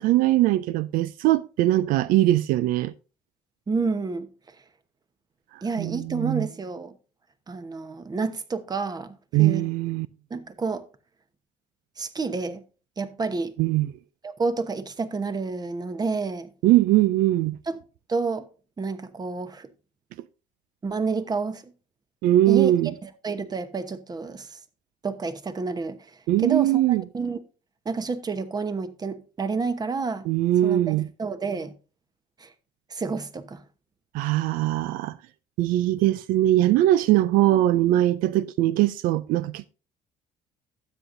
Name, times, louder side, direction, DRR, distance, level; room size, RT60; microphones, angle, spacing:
voice 1, 0.0-2.9 5.8-6.5 9.3-10.1 13.6-13.9 16.6-17.6 22.2-22.9 26.3-27.0 30.3-31.1 34.1-35.2 35.6-39.7, right 14 dB, 85° right, 0.4 m, -21 dB
voice 2, 3.7-4.6 5.6-6.9 7.5-9.6 10.3-10.8 12.0-12.6 13.0-13.5 14.2-16.5 17.7-17.8 18.1-18.4 18.8-19.7 20.8-21.7 22.5-24.6 25.0-27.4 27.8-30.2 30.6-31.7 32.4-32.5 32.9-33.6, right 4 dB, 30° right, 1.1 m, -29 dB
12.5 x 8.1 x 2.6 m
cardioid pair, 90°, 14 cm